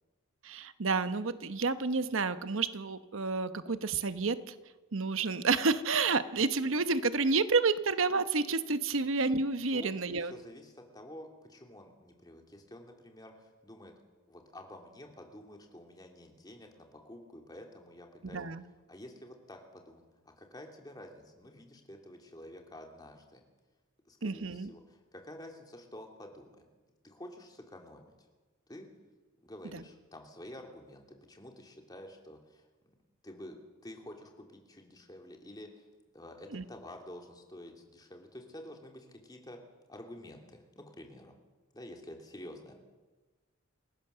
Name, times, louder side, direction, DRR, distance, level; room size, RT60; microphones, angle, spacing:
voice 1, 0.4-4.5 4.9-10.3 18.3-18.6 24.2-24.7 29.7-29.8 36.5-36.6, right 4 dB, 70° right, 11 dB, 1.0 m, -30 dB
voice 2, 10.2-13.9 14.3-18.4 18.9-23.4 24.1-26.6 27.0-28.1 28.7-28.9 29.4-32.7 33.2-33.6 33.8-35.8 36.1-39.6 39.9-41.3 41.7-42.7, left 1 dB, 20° left, 2 dB, 2.8 m, -49 dB
28.0 x 16.5 x 6.9 m, 1.3 s
head